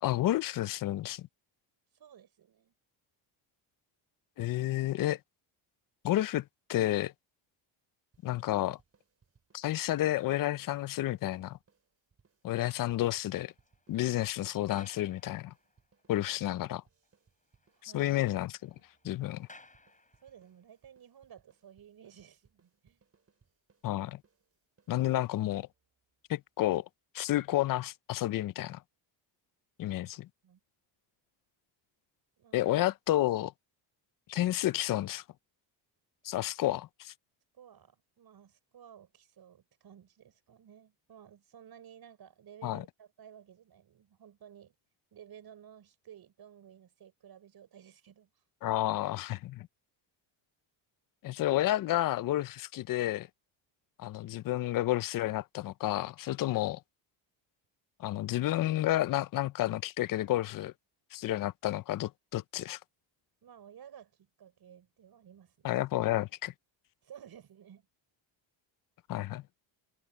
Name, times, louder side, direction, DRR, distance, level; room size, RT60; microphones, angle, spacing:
voice 1, 0.0-1.3 4.4-5.2 6.0-7.1 8.2-8.8 9.5-11.6 12.4-13.5 13.9-15.5 16.1-16.8 17.8-18.7 19.0-19.5 23.8-24.2 24.9-25.7 26.3-26.8 27.1-28.8 29.8-30.3 32.5-33.5 34.3-35.2 36.2-37.1 42.6-42.8 48.6-49.7 51.2-53.3 54.0-56.8 58.0-60.7 61.1-62.8 65.6-66.5 69.1-69.4, left 14 dB, 45° left, 0.5 m, -31 dB
voice 2, 1.9-2.7 17.8-18.1 20.2-23.0 30.4-30.6 32.4-32.7 36.4-36.5 37.5-44.7 45.1-48.3 63.4-65.7 67.0-67.9, right 9 dB, 50° right, 5.2 m, -55 dB
sound 1, 8.1-25.9, right 5 dB, 30° right, 5.0 m, -70 dB
sound 2, 12.7-16.0 16.6-16.7 17.0-17.1 17.4-20.6, left 3 dB, 15° left, 6.1 m, -60 dB
cardioid pair, 125°, 48 cm